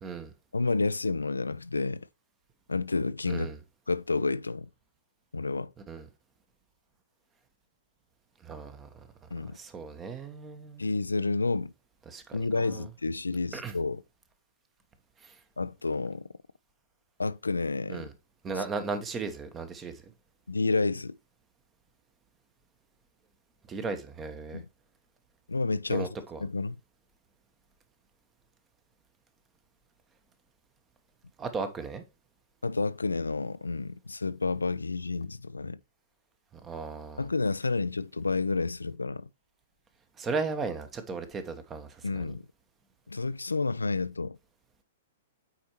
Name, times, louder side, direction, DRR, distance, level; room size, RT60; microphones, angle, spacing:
voice 1, 0.0-0.3 3.3-3.6 5.9-6.1 8.4-8.9 9.4-10.8 12.1-12.9 13.5-13.7 15.2-15.3 17.9-18.1 18.4-20.0 23.7-24.6 25.9-26.4 31.4-32.0 36.6-37.3 40.2-42.3, right 4 dB, 20° right, 1.0 m, -36 dB
voice 2, 0.5-2.1 2.7-3.5 3.9-4.7 5.3-5.7 9.3-9.6 10.8-11.7 12.3-14.0 15.6-16.2 17.2-18.0 18.6-18.7 20.5-21.1 24.5-24.7 25.5-26.1 26.4-26.8 32.6-35.8 37.2-39.3 42.0-42.4 43.1-44.4, left 3 dB, 80° left, 0.3 m, -30 dB
8.5 x 4.4 x 3.0 m
figure-of-eight pair, 105°, 0 cm